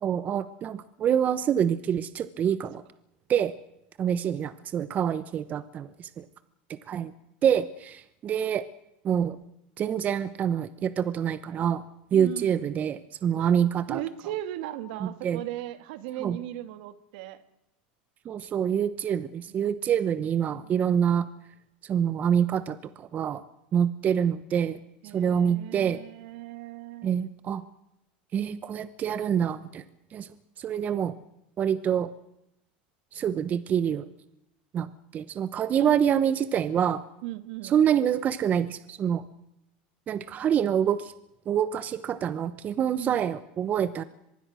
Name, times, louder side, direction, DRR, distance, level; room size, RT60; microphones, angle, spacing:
voice 1, 0.0-2.8 3.3-3.5 4.0-6.2 6.7-7.1 7.4-8.6 9.0-9.4 9.8-11.8 12.1-14.0 15.0-15.4 16.2-16.4 18.2-21.3 21.8-23.4 23.7-24.8 25.1-26.0 27.0-27.6 28.3-29.8 30.1-30.3 30.6-31.1 31.6-32.1 33.1-34.1 34.7-37.0 37.6-39.2 40.1-41.1 41.5-44.0, right 8 dB, 30° right, 14 dB, 1.0 m, -26 dB
voice 2, 12.1-12.7 13.4-13.5 13.9-17.4 19.5-21.2 25.0-27.1 35.8-35.9 37.2-37.8 43.0-43.3, right 13 dB, 70° right, 12 dB, 1.8 m, -38 dB
24.0 x 21.5 x 6.3 m, 0.83 s
supercardioid pair, 130°, 5 cm